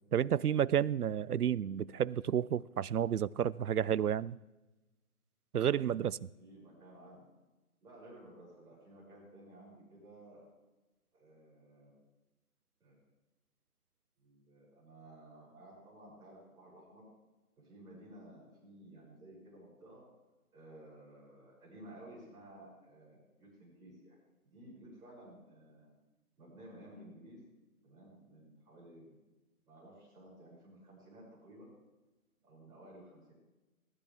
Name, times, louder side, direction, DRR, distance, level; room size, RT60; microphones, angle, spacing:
voice 1, 0.1-4.4 5.5-6.2, right 9 dB, 90° right, 0.6 m, -31 dB
voice 2, 6.4-7.3 7.8-10.4 11.1-11.9 12.8-13.0 14.2-17.0 17.6-20.0 20.5-24.2 24.4-25.9 26.4-27.4 27.8-29.2 29.7-31.7 32.4-33.3, right 1 dB, 10° right, 6.2 m, -55 dB
21.5 x 12.5 x 3.5 m
figure-of-eight pair, 155°, 44 cm